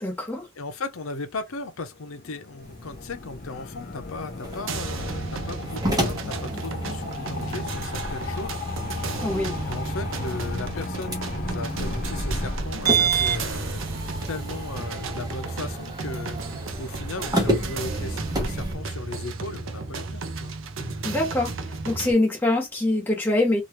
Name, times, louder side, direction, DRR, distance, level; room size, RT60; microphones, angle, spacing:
voice 1, 0.0-0.5 9.2-9.5 21.0-21.5 21.8-23.6, left 2 dB, 10° left, 1.2 m, -24 dB
voice 2, 0.6-8.6 9.6-13.8 14.3-16.4 16.8-20.5, left 3 dB, 75° left, 0.7 m, -36 dB
sound 1, 1.9-12.6, left 4 dB, 40° left, 0.4 m, -37 dB
sound 2, 2.6-18.7, right 2 dB, 15° right, 0.9 m, -31 dB
sound 3, 4.7-22.1, right 3 dB, 65° right, 0.6 m, -33 dB
3.0 x 2.4 x 3.0 m
head